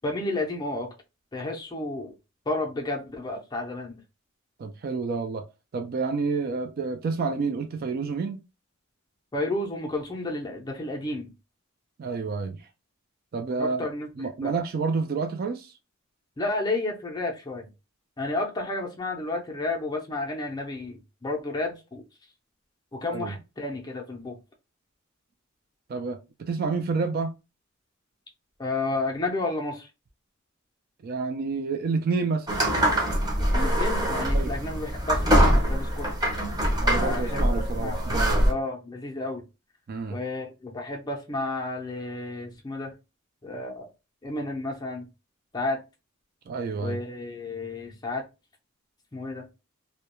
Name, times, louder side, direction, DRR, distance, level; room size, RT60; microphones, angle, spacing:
voice 1, 0.0-0.9 1.3-2.1 2.5-4.0 9.3-11.3 13.6-14.1 14.4-14.5 16.4-17.7 18.2-22.0 22.9-24.4 28.6-29.9 33.5-36.1 36.9-38.0 38.4-39.4 40.1-42.9 43.4-43.9 44.2-45.1 45.5-45.8 46.8-48.2 49.1-49.5, left 2 dB, 20° left, 0.5 m, -31 dB
voice 2, 4.6-5.4 5.7-8.4 12.0-12.6 13.3-13.9 14.2-15.7 23.0-23.3 25.9-27.3 31.0-32.5 34.3-34.5 36.8-38.4 39.9-40.2 46.5-47.0, right 4 dB, 50° right, 0.3 m, -29 dB
sound 1, 32.5-38.5, equal, 20° right, 0.7 m, -23 dB
2.2 x 2.1 x 2.9 m
head